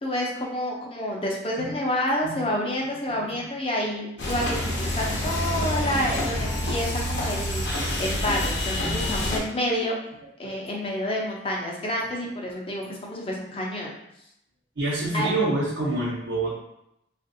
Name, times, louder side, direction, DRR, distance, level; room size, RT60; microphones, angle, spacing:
voice 1, 0.0-7.7 8.0-10.0 10.4-13.9 15.1-15.3, left 1 dB, 30° left, -2 dB, 0.6 m, -29 dB
voice 2, 3.1-3.4 3.8-3.9 8.8-9.2 10.4-10.7 12.9-13.0 14.8-16.6, right 2 dB, 90° right, -8 dB, 0.8 m, -28 dB
sound 1, 4.2-9.4, left 1 dB, 70° left, 0.7 m, -27 dB
3.4 x 2.4 x 2.6 m, 0.80 s
head